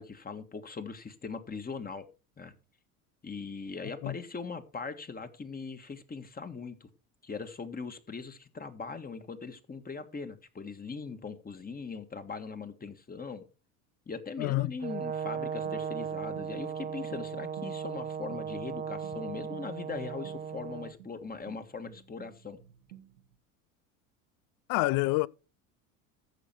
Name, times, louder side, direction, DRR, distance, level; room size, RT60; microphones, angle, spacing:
voice 1, 0.0-2.1 2.4-2.5 3.2-6.9 7.2-13.5 14.1-22.6, left 4 dB, 20° left, 1.7 m, -40 dB
voice 2, 14.4-14.7 24.7-25.3, left 21 dB, 50° left, 0.6 m, -27 dB
Brass instrument, 14.8-20.9, right 7 dB, 20° right, 0.5 m, -37 dB
sound 1, 15.6-23.4, right 12 dB, 85° right, 1.6 m, -54 dB
15.0 x 6.4 x 4.6 m
hypercardioid pair, 75°, 43 cm